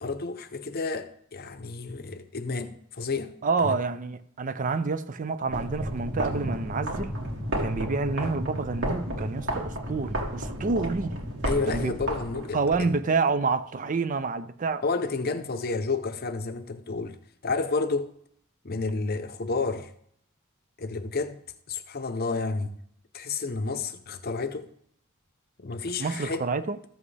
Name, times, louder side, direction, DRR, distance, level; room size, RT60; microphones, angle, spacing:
voice 1, 0.0-3.4 3.6-3.8 11.4-13.0 14.8-17.2 17.4-18.1 18.6-19.9 20.8-21.4 21.7-22.7 23.1-24.7 25.6-26.5, left 4 dB, 45° left, 0.7 m, -30 dB
voice 2, 3.4-7.2 7.6-11.2 11.6-11.9 12.5-14.8 26.0-26.8, right 4 dB, 35° right, 0.4 m, -28 dB
sound 1, 5.4-12.8, equal, 60° right, 2.3 m, -32 dB
14.0 x 7.5 x 3.3 m
head